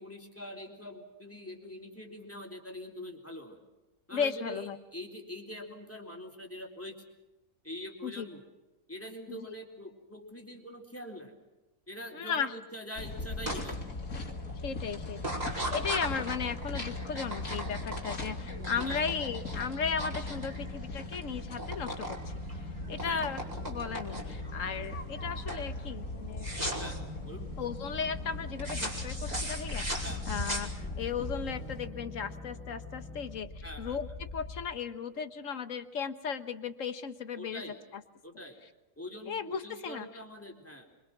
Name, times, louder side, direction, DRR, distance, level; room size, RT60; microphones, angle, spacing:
voice 1, 0.0-3.6 4.1-7.0 7.6-8.4 8.9-11.3 11.9-13.8 18.9-19.0 23.0-23.3 26.8-27.5 30.0-30.2 33.6-34.0 37.4-37.8 38.2-38.6 39.0-40.9, left 1 dB, 10° left, 2 dB, 4.0 m, -44 dB
voice 2, 4.1-4.8 8.0-8.2 9.3-9.4 12.1-12.5 14.6-15.4 15.7-22.4 22.9-23.4 23.6-26.5 27.6-37.6 39.3-40.2, left 6 dB, 65° left, 10 dB, 1.7 m, -36 dB
sound 1, 13.0-31.9, left 2 dB, 85° left, 3.0 m, -39 dB
sound 2, 13.5-13.6 14.1-14.5 15.2-21.2 21.5-22.2 22.5-24.5 24.9-25.2 25.5-25.7 26.4-27.0 28.6-31.1, right 1 dB, 30° right, 5.4 m, -38 dB
sound 3, 20.9-34.6, left 1 dB, 10° right, 4.2 m, -45 dB
25.5 x 25.0 x 6.1 m, 1.0 s
omnidirectional pair, 1.5 m